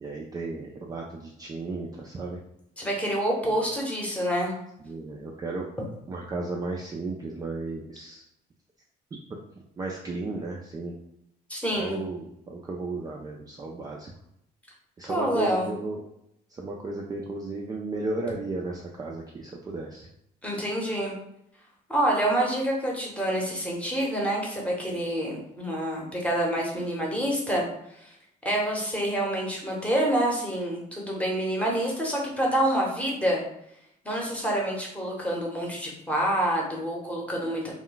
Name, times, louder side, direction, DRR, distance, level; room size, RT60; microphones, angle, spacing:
voice 1, 0.0-2.4 3.5-3.6 4.8-5.7 6.1-8.2 9.3-10.9 11.7-14.1 15.0-16.0 16.5-20.1, right 3 dB, 20° right, -1 dB, 0.3 m, -34 dB
voice 2, 2.8-4.5 11.5-12.0 15.1-15.8 20.4-21.2 21.9-27.7 28.0-28.1 28.4-33.4 34.0-37.7, right 1 dB, 10° left, -2 dB, 0.8 m, -27 dB
2.2 x 2.2 x 3.8 m, 0.78 s
cardioid pair, 110°, 17 cm